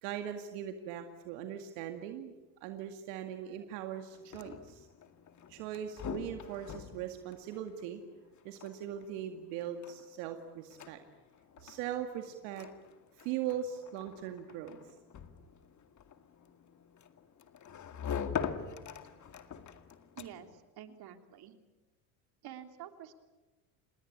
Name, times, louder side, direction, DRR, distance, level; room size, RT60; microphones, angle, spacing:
voice 1, 0.0-2.3 2.6-4.9 5.5-8.0 8.4-11.0 11.6-12.7 13.2-15.0, right 10 dB, 75° right, 6 dB, 2.2 m, -40 dB
sound 1, 4.1-20.6, left 7 dB, 35° left, 2.1 m, -44 dB
voice 2, 20.2-21.5 22.4-23.1, right 10 dB, 50° right, 7 dB, 3.2 m, -49 dB
28.0 x 19.5 x 8.7 m, 1.2 s
supercardioid pair, 100°, 47 cm